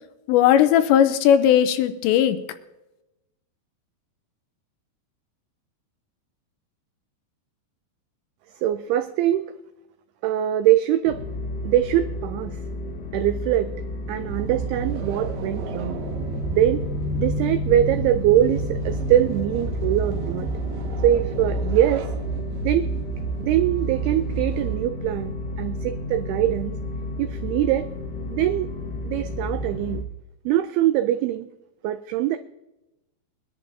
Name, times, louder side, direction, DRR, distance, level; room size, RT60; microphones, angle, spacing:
voice 1, 0.3-2.4, left 10 dB, 85° left, 10 dB, 3.0 m, -17 dB
voice 2, 8.6-9.5 10.2-11.2 11.6-12.6 13.1-13.7 14.1-16.0 16.5-16.9 17.2-20.5 21.0-22.1 22.6-22.9 23.4-26.8 27.2-27.9 28.3-28.7 29.1-30.0 30.5-31.5 31.8-32.4, right 12 dB, 85° right, 9 dB, 2.2 m, -22 dB
sound 1, 11.0-30.0, left 2 dB, 65° left, 2.1 m, -31 dB
sound 2, 14.3-24.7, right 6 dB, 70° right, 2.3 m, -31 dB
22.5 x 11.0 x 2.7 m, 0.96 s
omnidirectional pair, 5.1 m